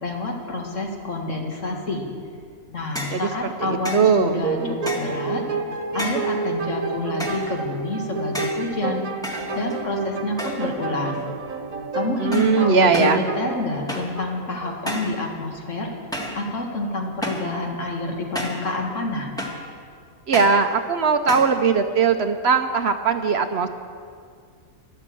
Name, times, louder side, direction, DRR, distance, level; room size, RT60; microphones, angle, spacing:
voice 1, 0.0-2.1 2.7-5.4 5.9-9.0 9.5-11.2 11.9-15.9 16.4-19.3, left 2 dB, 65° left, 1 dB, 2.2 m, -28 dB
sound 1, 3.0-3.3 3.8-4.1 4.9-5.2 6.0-6.4 7.2-7.5 8.3-8.7 9.2-9.9 10.4-10.8 11.1-11.5 12.3-12.6 12.9-13.2 13.9-14.2 14.9-15.2 16.1-16.4 17.2-17.5 18.4-18.7 19.4-19.7 20.3-20.6 21.3-21.6, equal, 5° left, 1.6 m, -31 dB
voice 2, 3.1-4.5 12.2-13.2 20.3-23.7, right 5 dB, 60° right, 8 dB, 0.8 m, -20 dB
sound 2, 4.4-14.9, right 4 dB, 85° right, 1.5 m, -30 dB
13.5 x 11.5 x 7.7 m, 2.2 s
omnidirectional pair, 1.4 m